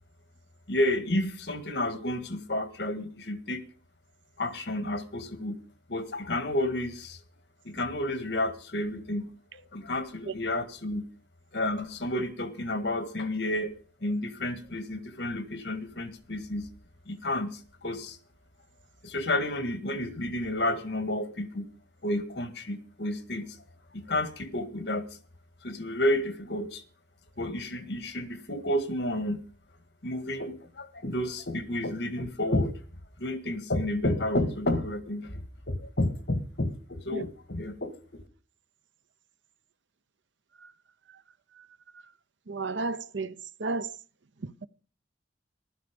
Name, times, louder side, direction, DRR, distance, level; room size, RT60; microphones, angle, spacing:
voice 1, 0.7-3.6 4.4-5.6 5.9-7.2 7.6-9.3 9.7-11.0 11.5-13.7 14.0-16.7 17.1-18.2 19.0-21.7 22.0-23.4 23.9-25.0 25.6-26.8 27.4-29.4 30.0-32.7 33.2-37.9, left 1 dB, 70° left, 1.9 m, -31 dB
voice 2, 42.5-43.3 43.6-43.9, right 3 dB, 90° right, 0.8 m, -31 dB
15.0 x 12.5 x 5.2 m
head